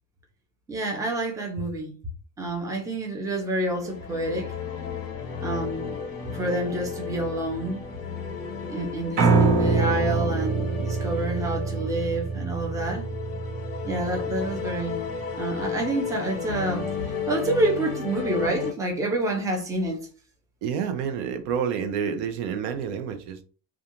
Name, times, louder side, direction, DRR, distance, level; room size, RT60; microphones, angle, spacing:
voice 1, 0.7-1.9 2.4-4.5 5.4-5.9 6.3-7.8 8.7-13.1 13.8-15.0 15.4-20.1, right 2 dB, 10° right, 0.5 m, -28 dB
sound 1, 3.3-18.7, left 6 dB, 35° left, 0.9 m, -34 dB
Piano, 9.2-15.3, right 4 dB, 55° right, 0.9 m, -25 dB
voice 2, 20.6-23.4, right 7 dB, 80° right, 0.6 m, -29 dB
2.4 x 2.3 x 2.8 m
cardioid pair, 130°, 40 cm